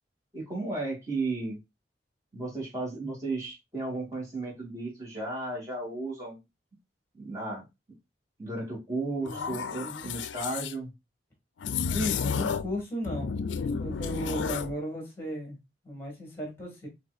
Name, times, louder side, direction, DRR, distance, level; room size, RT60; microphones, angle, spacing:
voice 1, 0.3-1.6 2.3-6.4 7.2-7.6 8.4-10.9, right 2 dB, 20° right, 2.4 m, -34 dB
voice 2, 9.2-10.1 11.9-15.6 15.8-16.9, equal, 15° left, 1.9 m, -36 dB
sound 1, 9.3-10.7 11.6-12.8 13.0-14.7, left 6 dB, 85° left, 0.4 m, -32 dB
6.1 x 3.1 x 2.4 m
head